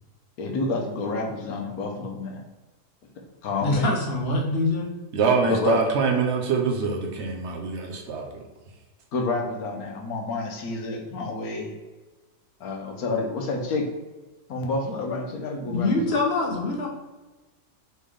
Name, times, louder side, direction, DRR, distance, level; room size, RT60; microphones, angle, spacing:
voice 1, 0.4-2.4 3.4-4.0 5.5-5.8 9.1-11.7 12.6-13.9 14.5-16.0, left 3 dB, 70° left, 2 dB, 1.3 m, -29 dB
voice 2, 3.6-4.9 15.7-16.9, left 2 dB, 45° left, 0 dB, 1.0 m, -24 dB
voice 3, 5.1-8.2, right 5 dB, 55° right, 2 dB, 0.9 m, -24 dB
4.1 x 3.5 x 3.4 m, 1.2 s
omnidirectional pair, 1.7 m